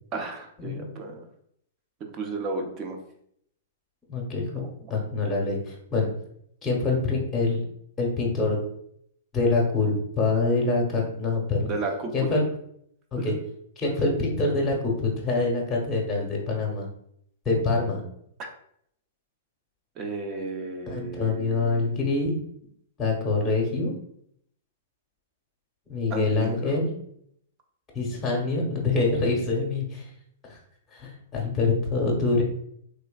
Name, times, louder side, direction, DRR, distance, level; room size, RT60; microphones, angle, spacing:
voice 1, 0.1-1.3 2.1-3.0 4.6-4.9 11.7-12.4 13.2-13.3 18.4-18.5 20.0-21.9 26.1-26.6, right 3 dB, 35° right, 3 dB, 0.6 m, -33 dB
voice 2, 4.1-4.6 4.9-6.1 6.6-7.6 8.0-8.6 9.3-11.7 12.1-12.5 13.1-13.3 13.8-16.9 17.4-18.0 20.9-22.4 23.0-23.9 25.9-26.9 27.9-30.1 30.5-30.6 30.9-32.4, left 3 dB, 15° left, -1 dB, 0.9 m, -25 dB
3.3 x 3.1 x 2.3 m, 0.70 s
figure-of-eight pair, 110°, 0 cm